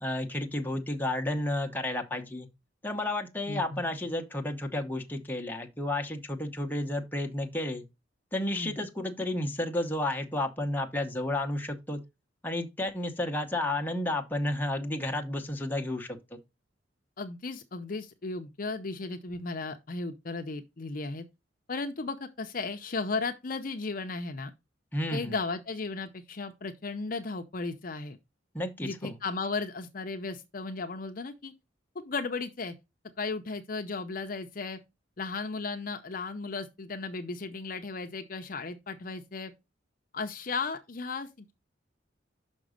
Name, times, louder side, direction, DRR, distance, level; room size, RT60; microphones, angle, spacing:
voice 1, 0.0-2.5 2.8-7.8 8.3-12.0 12.4-16.4 24.9-25.3 28.5-29.1, left 1 dB, 10° left, 0.9 m, -32 dB
voice 2, 3.5-3.8 8.5-8.8 17.2-21.2 21.7-24.5 25.1-28.2 28.8-31.5 31.9-32.7 33.2-34.8 35.2-39.5 40.1-41.5, left 3 dB, 45° left, 0.6 m, -35 dB
5.9 x 5.2 x 5.0 m
head